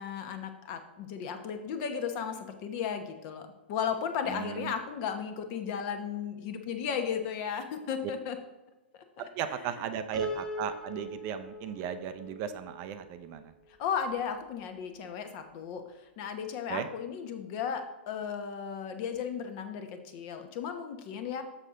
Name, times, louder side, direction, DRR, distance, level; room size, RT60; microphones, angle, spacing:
voice 1, 0.0-8.4 9.2-9.9 13.8-15.8 16.2-21.4, left 7 dB, 40° left, 7 dB, 1.0 m, -35 dB
voice 2, 4.3-4.7 9.4-13.5 16.7-16.9, right 8 dB, 35° right, 10 dB, 0.5 m, -36 dB
Piano, 10.1-13.4, right 1 dB, 5° left, 1.7 m, -40 dB
6.5 x 6.5 x 3.7 m, 1.0 s
hypercardioid pair, 125°, 6 cm